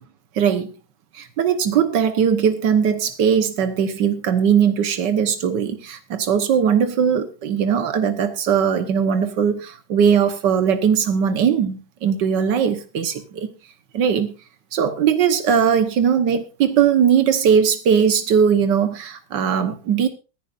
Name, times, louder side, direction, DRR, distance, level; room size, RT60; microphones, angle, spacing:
voice 1, 0.4-0.7 1.1-13.5 13.9-14.4 14.7-20.1, right 7 dB, 90° right, 9 dB, 1.7 m, -19 dB
23.5 x 10.5 x 2.5 m, 0.32 s
omnidirectional pair, 1.9 m